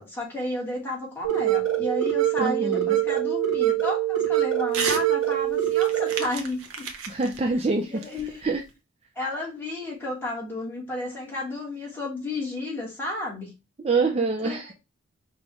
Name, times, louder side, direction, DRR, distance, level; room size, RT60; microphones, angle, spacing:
voice 1, 0.0-6.8 7.6-8.4 9.1-13.5 14.4-14.6, left 1 dB, 10° left, -3 dB, 1.5 m, -32 dB
sound 1, 1.2-6.2, right 12 dB, 65° right, 1.0 m, -24 dB
voice 2, 2.4-3.0 7.1-8.0 8.4-8.6 13.8-14.7, right 3 dB, 30° right, 2 dB, 0.4 m, -25 dB
Crumpling crinkling / Tearing, 4.7-5.1 5.4-8.7, right 5 dB, 85° right, 0.7 m, -34 dB
5.2 x 2.5 x 3.1 m, 0.26 s
head